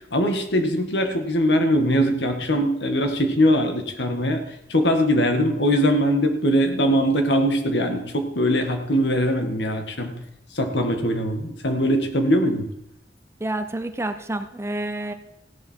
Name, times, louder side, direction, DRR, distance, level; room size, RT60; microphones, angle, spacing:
voice 1, 0.1-4.4 4.7-10.2 10.5-12.7, equal, 75° left, 5 dB, 1.8 m, -21 dB
voice 2, 13.4-15.1, right 1 dB, 15° right, 9 dB, 0.7 m, -29 dB
15.5 x 11.0 x 4.5 m, 0.81 s
head